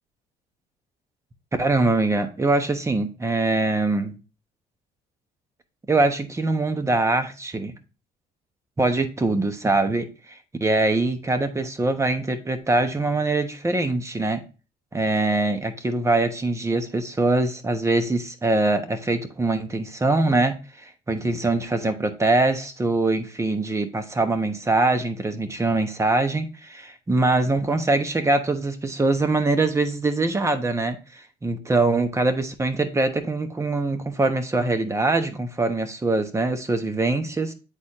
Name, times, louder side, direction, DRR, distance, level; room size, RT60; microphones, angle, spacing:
voice 1, 1.6-4.1 5.9-7.7 8.8-14.4 14.9-37.5, right 2 dB, 15° right, 8 dB, 1.0 m, -23 dB
8.1 x 4.2 x 2.9 m, 0.32 s
cardioid pair, 110°, 17 cm